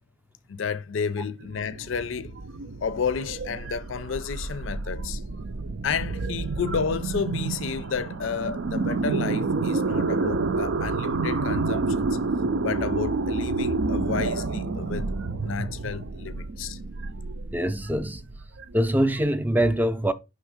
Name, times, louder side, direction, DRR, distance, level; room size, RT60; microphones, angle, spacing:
voice 1, 0.5-2.3 2.8-5.2 5.8-12.1 12.6-15.1 15.4-16.8, left 6 dB, 80° left, 0.5 m, -31 dB
sound 1, 1.4-19.2, right 3 dB, 75° right, 0.5 m, -29 dB
voice 2, 17.5-18.3 18.7-20.1, right 1 dB, 10° right, 0.4 m, -24 dB
5.6 x 3.6 x 4.8 m
head